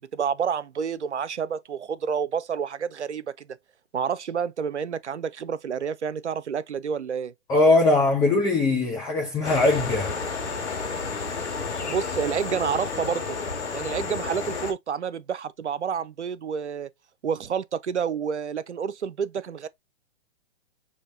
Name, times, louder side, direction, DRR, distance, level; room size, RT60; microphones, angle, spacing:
voice 1, 0.0-3.5 3.9-7.3 11.8-13.4 13.7-16.9 17.2-19.7, right 7 dB, 90° right, 0.6 m, -29 dB
voice 2, 7.5-10.2, left 2 dB, 10° left, 0.6 m, -21 dB
sound 1, 9.4-14.7, left 4 dB, 80° left, 1.8 m, -31 dB
6.4 x 2.7 x 2.6 m
hypercardioid pair, 130°, 34 cm